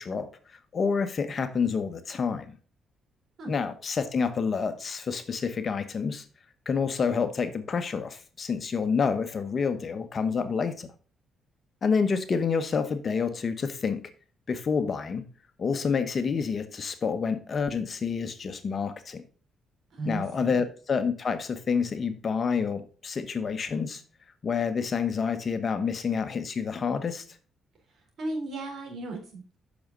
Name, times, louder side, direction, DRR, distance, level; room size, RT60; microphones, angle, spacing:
voice 1, 0.0-2.5 3.5-6.2 6.7-10.9 11.8-14.0 14.5-15.2 15.6-19.2 20.0-24.0 24.4-27.2, left 5 dB, 45° left, 1.1 m, -28 dB
voice 2, 19.9-20.6 28.2-29.6, right 2 dB, 55° right, 3.7 m, -35 dB
8.5 x 6.2 x 3.9 m
cardioid pair, 90°, 0 cm